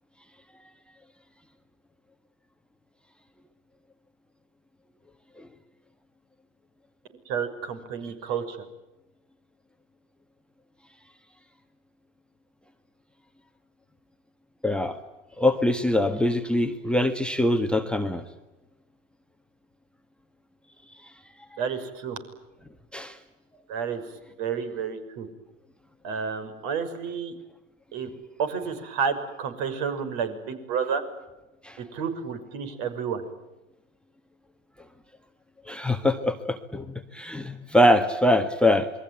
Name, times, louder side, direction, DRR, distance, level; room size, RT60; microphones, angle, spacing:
voice 1, 7.3-8.6 21.6-22.2 23.7-24.0 24.4-25.3 26.0-27.3 27.9-28.1 28.4-31.0 31.8-33.2, right 6 dB, 50° right, 9 dB, 6.1 m, -30 dB
voice 2, 14.6-15.0 15.4-18.2 22.9-23.2 31.6-31.8 35.7-38.9, left 1 dB, 5° left, 10 dB, 1.5 m, -23 dB
28.0 x 22.5 x 9.3 m, 1.0 s
hypercardioid pair, 100°, 38 cm